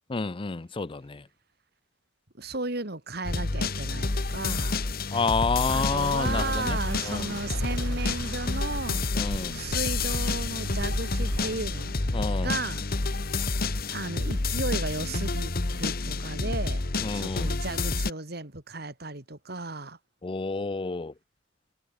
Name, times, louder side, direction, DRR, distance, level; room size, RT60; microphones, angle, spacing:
voice 1, 0.1-1.2 5.1-6.8 7.0-7.3 9.2-9.5 12.1-12.6 17.0-17.5 20.2-21.1, left 4 dB, 30° left, 0.5 m, -29 dB
voice 2, 2.4-4.8 5.7-9.2 9.5-11.9 12.4-13.2 13.9-20.0, right 2 dB, 55° right, 3.4 m, -35 dB
sound 1, 3.2-18.1, left 3 dB, 50° left, 1.3 m, -29 dB
sound 2, 5.7-11.9, right 3 dB, 80° right, 1.0 m, -40 dB
head